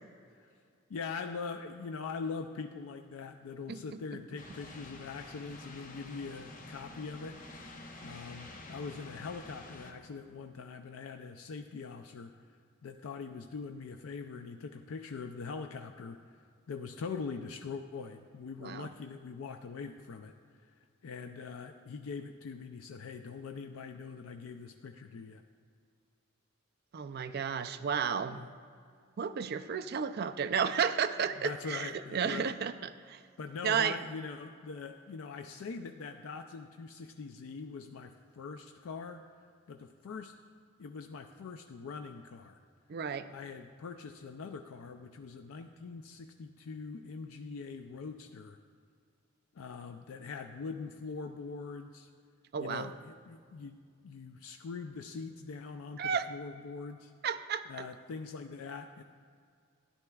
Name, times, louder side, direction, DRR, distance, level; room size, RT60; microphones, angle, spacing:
voice 1, 0.9-7.6 8.0-20.3 20.6-20.8 21.0-25.4 28.3-28.5 31.4-32.5 33.4-39.2 39.7-40.3 40.8-42.6 43.3-48.6 49.5-52.1 52.6-53.8 54.0-57.1 57.7-59.0, left 5 dB, 80° left, 6 dB, 0.4 m, -43 dB
sound 1, 4.4-9.9, left 2 dB, 40° left, 0.8 m, -49 dB
voice 2, 26.9-28.4 29.2-32.7 33.1-33.2 33.6-34.0 42.9-43.3 52.5-52.9 56.0-56.3 57.2-57.6, right 7 dB, 50° right, 10 dB, 0.4 m, -32 dB
13.0 x 10.5 x 2.3 m, 2.2 s
head